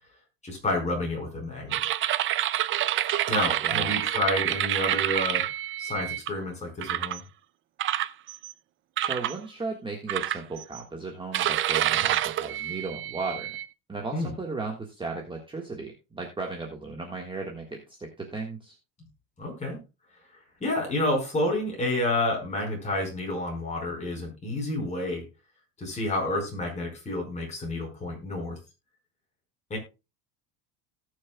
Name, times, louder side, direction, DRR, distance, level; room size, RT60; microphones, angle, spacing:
voice 1, 0.4-1.8 3.3-5.4 5.8-7.2 14.1-14.3 19.4-19.8 20.6-25.2 25.8-28.6 29.7-29.8, left 1 dB, 15° left, 0 dB, 4.8 m, -29 dB
sound 1, 1.7-6.3 6.8-7.2 7.8-8.5 9.0-9.4 10.1-10.8 11.3-13.7, right 13 dB, 30° right, 0.4 m, -27 dB
voice 2, 9.0-13.6 13.9-18.7, right 3 dB, 10° right, 1 dB, 1.6 m, -36 dB
18.5 x 6.6 x 2.3 m, 0.27 s
cardioid pair, 150°, 42 cm